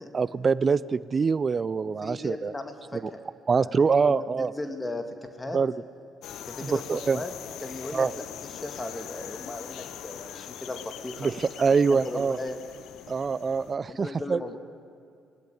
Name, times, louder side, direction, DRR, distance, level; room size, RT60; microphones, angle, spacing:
voice 1, 0.1-2.5 2.9-3.0 3.5-4.5 5.5-5.7 6.6-7.2 7.9-8.1 11.2-12.4 13.1-14.4, right 5 dB, 40° right, 19 dB, 0.5 m, -24 dB
voice 2, 1.8-3.2 3.6-5.6 6.4-7.3 7.6-11.3 11.7-12.6 13.9-14.6, left 2 dB, 20° left, 7 dB, 2.0 m, -37 dB
sound 1, 6.2-13.8, left 10 dB, 65° left, 0.9 m, -42 dB
20.0 x 19.0 x 8.1 m, 2.4 s
hypercardioid pair, 50°, 0 cm